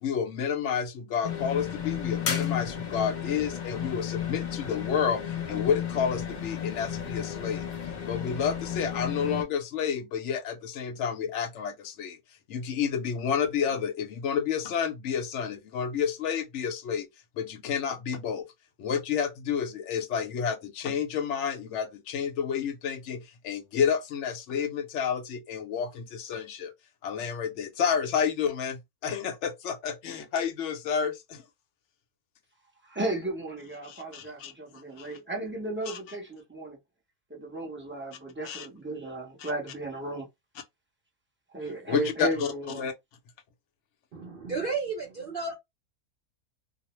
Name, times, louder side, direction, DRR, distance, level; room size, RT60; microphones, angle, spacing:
voice 1, 0.0-7.7 8.1-12.2 12.5-17.1 17.3-18.5 18.8-26.7 27.0-31.4 33.8-34.5 35.0-35.1 35.9-36.0 38.4-38.7 39.4-39.5 41.9-42.3 42.8-42.9, left 7 dB, 65° left, 0.8 m, -30 dB
sound 1, 1.2-9.4, left 8 dB, 85° left, 0.4 m, -33 dB
voice 2, 32.8-36.8 37.3-40.3 41.5-42.9, right 2 dB, 15° right, 0.5 m, -34 dB
voice 3, 44.1-45.5, right 4 dB, 60° right, 0.5 m, -32 dB
2.6 x 2.0 x 3.0 m
omnidirectional pair, 1.6 m